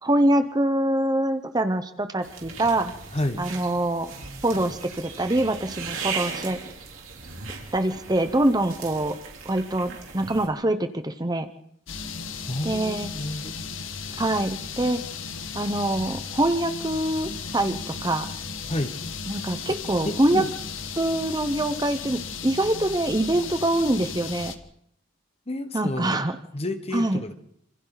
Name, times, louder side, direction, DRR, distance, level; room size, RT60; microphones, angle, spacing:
voice 1, 0.0-2.9 3.4-4.1 4.4-6.6 7.7-9.1 9.4-11.5 12.6-13.1 14.2-15.0 15.5-18.3 19.3-20.4 21.0-24.5 25.7-26.4 26.9-27.2, right 1 dB, 20° right, 9 dB, 0.9 m, -24 dB
sound 1, 2.2-10.5, right 5 dB, 75° right, 3.9 m, -37 dB
sound 2, 11.9-24.6, left 5 dB, 70° left, 1.5 m, -35 dB
voice 2, 12.5-13.5 18.7-19.0 19.7-19.8 20.0-20.5 25.5-26.2 26.5-27.3, left 1 dB, 30° left, 8 dB, 1.4 m, -30 dB
27.5 x 26.5 x 4.1 m, 0.71 s
head